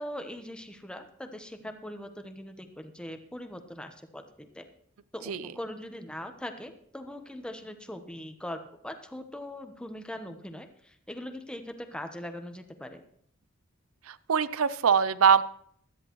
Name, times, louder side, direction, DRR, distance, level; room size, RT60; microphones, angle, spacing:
voice 1, 0.0-4.7 5.1-13.0, left 1 dB, 5° left, 6 dB, 1.0 m, -41 dB
voice 2, 14.1-15.4, right 6 dB, 85° right, 16 dB, 0.6 m, -23 dB
16.5 x 13.0 x 3.1 m, 0.65 s
head